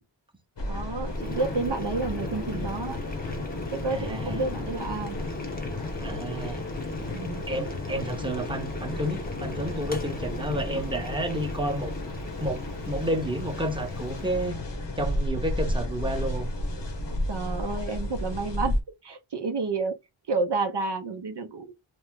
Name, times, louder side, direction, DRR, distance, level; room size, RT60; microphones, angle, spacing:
sound 1, 0.6-18.8, left 1 dB, 55° left, 0.9 m, -33 dB
voice 1, 0.7-3.0 3.7-5.2 7.1-7.4 17.3-18.8 19.0-20.0 20.3-21.7, right 3 dB, 55° right, 0.6 m, -30 dB
Boiling, 1.0-14.5, left 2 dB, 20° left, 0.8 m, -38 dB
voice 2, 3.9-4.4 6.0-6.6 7.5-11.9 12.4-14.6 15.0-16.5, right 1 dB, 10° right, 0.8 m, -31 dB
2.9 x 2.0 x 3.5 m
wide cardioid pair, 55°, 50 cm